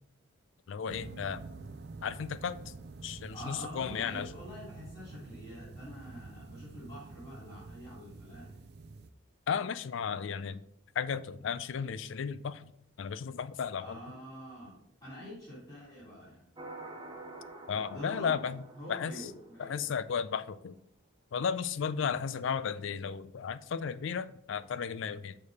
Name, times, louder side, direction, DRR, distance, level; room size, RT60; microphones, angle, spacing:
voice 1, 0.7-1.4 2.0-2.7 3.0-4.3 9.5-10.6 11.0-12.7 13.0-14.0 17.7-18.6 18.9-19.2 19.6-20.8 21.3-25.4, left 6 dB, 65° left, 15 dB, 0.3 m, -34 dB
sound 1, 0.9-9.1, right 3 dB, 50° right, 0.4 m, -47 dB
voice 2, 3.3-8.6 13.8-16.4 17.9-18.3 18.7-19.8, equal, 30° left, -8 dB, 3.0 m, -46 dB
sound 2, 16.6-20.0, right 2 dB, 20° right, 0.8 m, -48 dB
6.7 x 4.9 x 4.1 m, 0.76 s
head